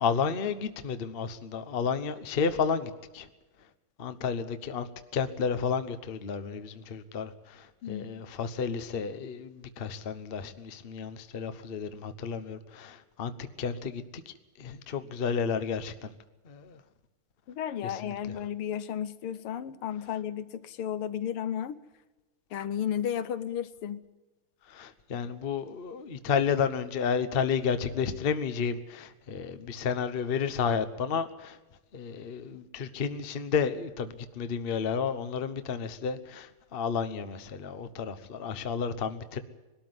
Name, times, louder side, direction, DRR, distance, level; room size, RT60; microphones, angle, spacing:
voice 1, 0.0-3.3 4.0-13.3 13.6-14.2 14.6-16.1 16.5-16.8 17.8-18.1 24.7-31.6 31.9-39.4, left 6 dB, 40° left, 0.8 m, -31 dB
voice 2, 7.8-8.2 17.5-21.8 22.5-24.0, left 9 dB, 85° left, 1.8 m, -33 dB
20.5 x 13.0 x 9.5 m
omnidirectional pair, 2.4 m